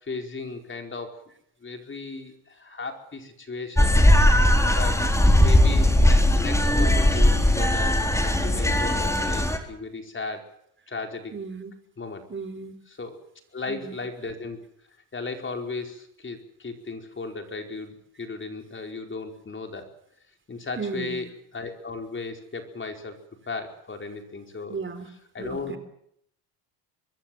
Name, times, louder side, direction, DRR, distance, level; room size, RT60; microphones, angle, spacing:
voice 1, 0.0-1.1 1.6-3.9 4.7-5.0 5.4-10.4 10.9-11.4 12.0-12.2 12.9-13.2 13.5-14.6 15.1-19.8 20.5-23.2 23.5-24.8 25.3-25.8, left 3 dB, 25° left, 4 dB, 4.8 m, -35 dB
sound 1, 3.8-9.6, left 1 dB, 5° left, 3.9 m, -19 dB
voice 2, 11.3-11.7 12.3-12.7 13.7-14.0 20.8-21.2 24.7-25.1 25.4-25.8, right 5 dB, 25° right, 10 dB, 3.8 m, -35 dB
25.0 x 21.5 x 7.9 m, 0.73 s
supercardioid pair, 105°, 49 cm